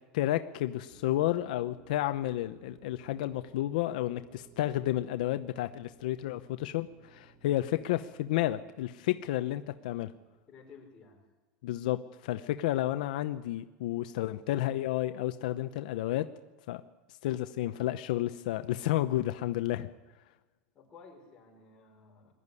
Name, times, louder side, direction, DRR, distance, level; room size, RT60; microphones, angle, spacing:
voice 1, 0.1-10.1 11.6-16.3 16.7-16.8 17.2-19.9, left 14 dB, 80° left, 9 dB, 0.8 m, -31 dB
sound 1, 0.9-10.4, right 5 dB, 50° right, 5.1 m, -58 dB
voice 2, 10.5-11.3 20.7-22.3, left 4 dB, 20° left, -1 dB, 5.2 m, -54 dB
21.5 x 12.5 x 9.8 m, 1.2 s
supercardioid pair, 165°, 4 cm